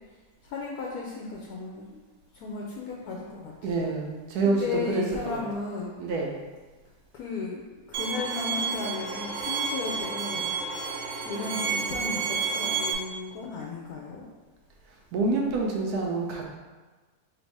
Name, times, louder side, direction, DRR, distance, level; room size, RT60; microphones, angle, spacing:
voice 1, 0.1-2.0 2.3-3.9 4.4-6.0 7.1-10.6 11.2-14.3, left 4 dB, 80° left, -2 dB, 1.1 m, -35 dB
voice 2, 3.6-5.4 6.0-6.3 15.1-16.5, right 3 dB, 90° right, 0 dB, 1.2 m, -27 dB
Bowed string instrument, 7.9-12.9, right 5 dB, 70° right, 0.9 m, -30 dB
3.2 x 2.7 x 4.5 m, 1.3 s
omnidirectional pair, 1.6 m